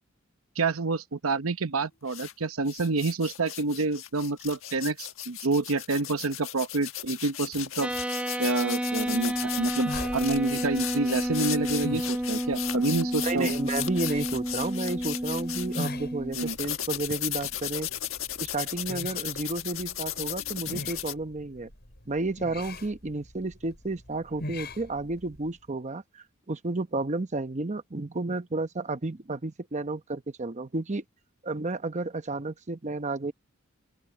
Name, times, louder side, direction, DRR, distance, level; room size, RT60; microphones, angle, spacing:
voice 1, 0.6-7.9 8.4-13.5 16.4-16.6, right 3 dB, 90° right, 0.9 m, -28 dB
sound 1, 2.1-2.3 2.7-15.9 16.3-21.1, left 12 dB, 70° left, 1.5 m, -36 dB
sound 2, 7.8-16.3, equal, 5° right, 0.4 m, -31 dB
sound 3, 9.0-25.6, left 1 dB, 55° left, 7.8 m, -43 dB
voice 2, 13.2-17.9 18.3-21.7 22.1-31.0 31.4-33.3, right 2 dB, 35° right, 0.9 m, -32 dB
open air
head